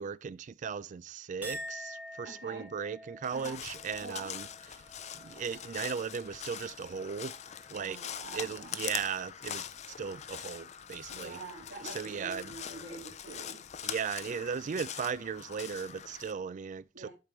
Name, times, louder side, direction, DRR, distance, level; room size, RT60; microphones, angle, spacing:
voice 1, 0.0-4.5 5.2-7.3 7.7-8.0 8.3-9.7 10.0-11.4 11.9-12.5 13.8-17.1, right 6 dB, 40° right, 0.3 m, -37 dB
Chink clink, 1.4-8.0 8.4-8.9, equal, 10° right, 1.0 m, -48 dB
voice 2, 2.2-2.7 3.3-3.6 4.0-4.3 7.7-9.0 11.1-13.6 14.2-14.4 16.9-17.1, right 3 dB, 80° right, 2.0 m, -46 dB
Crow, 3.2-16.3, left 9 dB, 35° left, 0.5 m, -43 dB
11.5 x 4.7 x 3.1 m
head